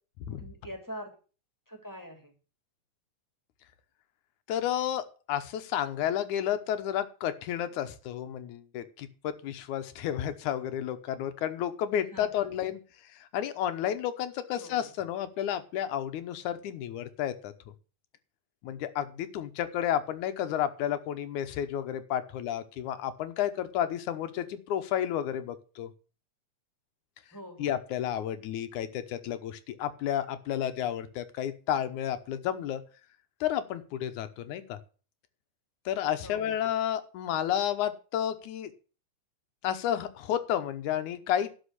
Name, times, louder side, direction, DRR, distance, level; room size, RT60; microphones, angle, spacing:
voice 1, 0.3-1.1 1.7-2.3 12.1-12.5 14.6-14.9 27.3-27.8 36.2-36.6, equal, 5° left, 3 dB, 2.8 m, -44 dB
voice 2, 4.5-5.0 5.3-12.8 13.2-17.5 18.6-25.9 27.6-32.8 33.4-34.8 35.9-38.7 39.6-41.5, left 10 dB, 80° left, 11 dB, 2.4 m, -31 dB
12.0 x 5.5 x 8.2 m, 0.37 s
omnidirectional pair, 3.4 m